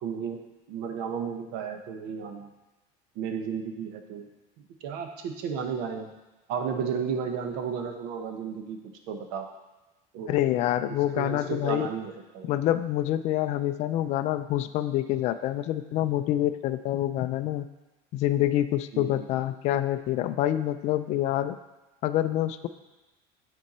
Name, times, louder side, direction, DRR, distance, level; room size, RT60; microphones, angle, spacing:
voice 1, 0.0-0.4 0.7-2.5 3.1-4.2 4.8-6.1 6.5-8.8 9.1-9.5 10.1-10.4 11.1-12.5 18.9-19.3, right 6 dB, 60° right, 5 dB, 1.0 m, -33 dB
voice 2, 10.3-11.9 12.4-17.7 18.1-21.6 22.0-22.7, left 13 dB, 35° left, 10 dB, 0.4 m, -26 dB
9.3 x 4.5 x 4.2 m, 1.1 s
cardioid pair, 150°, 19 cm